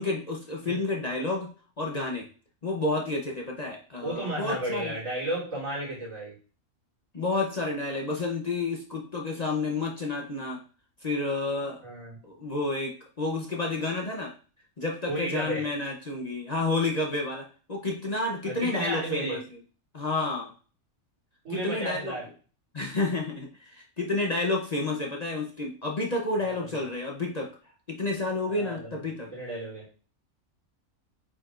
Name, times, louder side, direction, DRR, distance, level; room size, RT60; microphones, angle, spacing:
voice 1, 0.0-1.5 1.8-2.3 2.6-4.9 7.1-10.6 11.0-11.8 12.2-14.3 14.8-19.4 19.9-20.5 21.5-22.1 22.7-27.5 27.9-29.3, left 2 dB, 35° left, -1 dB, 0.8 m, -30 dB
voice 2, 4.0-6.4 11.8-12.2 15.1-15.7 18.5-19.4 21.4-22.3 26.4-26.7 28.5-29.1 29.3-29.9, right 1 dB, 80° right, -6 dB, 3.8 m, -33 dB
8.5 x 5.0 x 2.5 m, 0.39 s
omnidirectional pair, 1.4 m